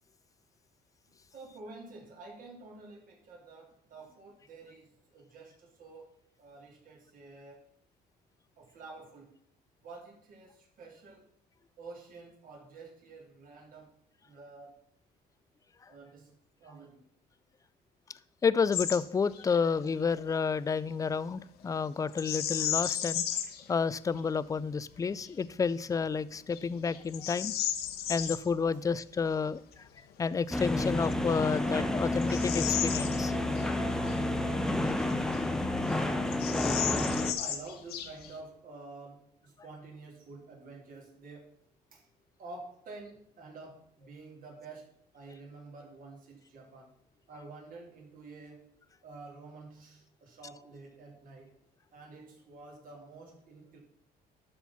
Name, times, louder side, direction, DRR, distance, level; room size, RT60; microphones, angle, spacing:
voice 1, 1.3-7.6 8.6-9.4 9.8-11.3 11.8-13.9 14.2-14.9 15.9-17.0 30.8-30.9 37.3-41.6 41.9-42.0 42.4-46.9 47.3-48.7 49.0-51.6 51.9-53.8, right 3 dB, 55° right, -1 dB, 3.1 m, -49 dB
voice 2, 18.4-23.2 23.7-27.5 28.1-29.6 30.2-33.3, left 5 dB, 20° left, 18 dB, 0.4 m, -30 dB
Bird vocalization bird call bird song, 18.7-19.0 19.3-19.6 22.1-23.6 24.2-24.3 24.9-25.3 25.9-26.0 26.5-28.4 30.5-30.6 31.3-33.7 34.0-34.1 34.8-35.6 35.9-36.0 36.3-38.4, left 10 dB, 70° left, 1.1 m, -34 dB
sound 1, 30.5-37.3, left 1 dB, 5° left, 0.8 m, -30 dB
11.5 x 4.4 x 5.7 m, 0.65 s
cardioid pair, 110°, 17 cm